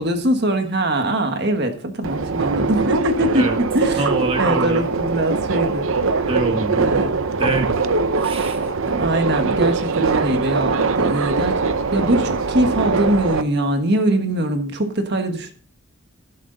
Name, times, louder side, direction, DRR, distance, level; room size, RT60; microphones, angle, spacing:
voice 1, 0.0-3.4 3.7-4.1 4.4-5.9 6.8-7.1 8.8-11.5 11.9-15.5, right 1 dB, 50° right, 6 dB, 1.5 m, -22 dB
Subway metro underground, 2.0-13.4, right 4 dB, 65° right, 0.7 m, -22 dB
voice 2, 4.0-4.9 6.3-6.9 7.4-7.8 8.2-8.7, right 2 dB, 25° right, 4 dB, 1.3 m, -25 dB
12.0 x 10.5 x 4.0 m, 0.44 s
head